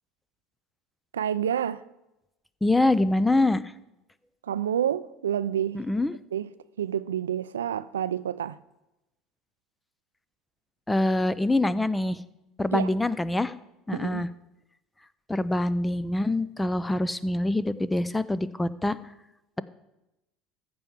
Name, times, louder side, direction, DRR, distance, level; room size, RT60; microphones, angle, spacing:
voice 1, 1.1-1.8 4.4-5.8 6.3-6.5 6.8-8.6 12.7-12.9 13.9-14.3, right 9 dB, 90° right, 0.4 m, -28 dB
voice 2, 2.6-3.6 5.7-6.1 10.9-12.2 12.6-13.5 13.9-14.3 15.3-19.0, left 2 dB, 10° left, 0.6 m, -25 dB
14.0 x 4.7 x 7.2 m
hypercardioid pair, 75°, 0 cm